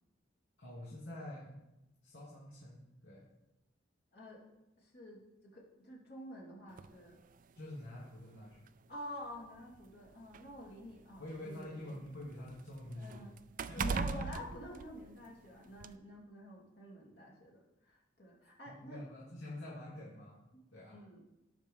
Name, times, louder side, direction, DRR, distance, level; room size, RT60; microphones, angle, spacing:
voice 1, 0.6-1.5 2.0-3.3 7.5-8.6 11.2-13.4 13.7-14.3 18.7-20.4 20.7-21.0, left 1 dB, 80° left, -7 dB, 2.6 m, -46 dB
voice 2, 4.8-5.2 5.5-7.2 8.9-11.9 12.9-13.4 13.7-19.0 20.5-21.2, left 1 dB, 55° left, -3 dB, 3.0 m, -49 dB
sound 1, 6.8-7.0 8.0-8.1 8.6-8.7 9.6-11.6 12.0-15.4 15.8-16.0, right 5 dB, 45° right, 0.4 m, -40 dB
17.5 x 6.1 x 3.8 m, 0.94 s
head